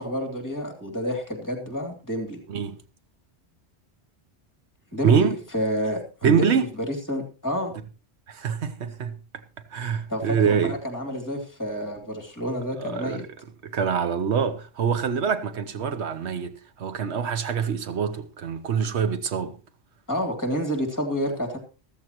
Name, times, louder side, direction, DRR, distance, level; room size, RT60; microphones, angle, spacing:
voice 1, 0.0-2.4 4.9-7.7 10.1-13.2 20.1-21.6, equal, 15° left, 2.8 m, -29 dB
voice 2, 5.0-5.3 6.2-6.7 8.3-9.2 9.7-10.8 12.8-13.3 13.6-19.5, right 6 dB, 80° right, 1.2 m, -25 dB
14.0 x 13.5 x 3.0 m
omnidirectional pair, 1.1 m